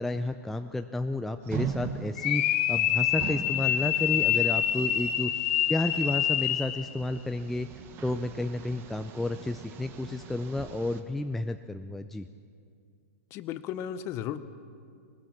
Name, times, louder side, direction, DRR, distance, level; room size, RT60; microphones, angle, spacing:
voice 1, 0.0-5.3 5.7-7.7 8.0-12.3, left 1 dB, 5° left, 7 dB, 0.4 m, -31 dB
sound 1, 1.4-11.0, right 7 dB, 30° right, 1.4 m, -41 dB
sound 2, 2.2-6.9, left 11 dB, 50° left, 1.1 m, -26 dB
voice 2, 13.3-14.4, left 10 dB, 30° left, 13 dB, 0.9 m, -34 dB
20.5 x 20.0 x 7.2 m, 2.3 s
hypercardioid pair, 145°, 8 cm